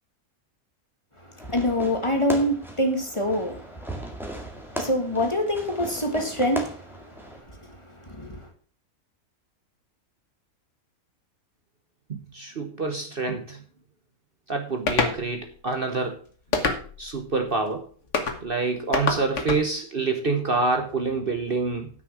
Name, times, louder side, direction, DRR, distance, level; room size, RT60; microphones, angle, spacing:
voice 1, 1.2-4.4 4.7-8.5, left 1 dB, 20° left, 1.7 m, -27 dB
Fireworks, 1.4-7.4, right 1 dB, ahead, 1.8 m, -37 dB
voice 2, 12.1-13.6 14.5-16.2 17.0-17.9 18.4-21.9, right 3 dB, 40° right, 1.2 m, -27 dB
sound 1, 14.9-15.2 16.5-17.1 18.1-18.4 18.9-19.6, left 4 dB, 55° left, 1.7 m, -25 dB
9.7 x 6.2 x 6.3 m
omnidirectional pair, 1.5 m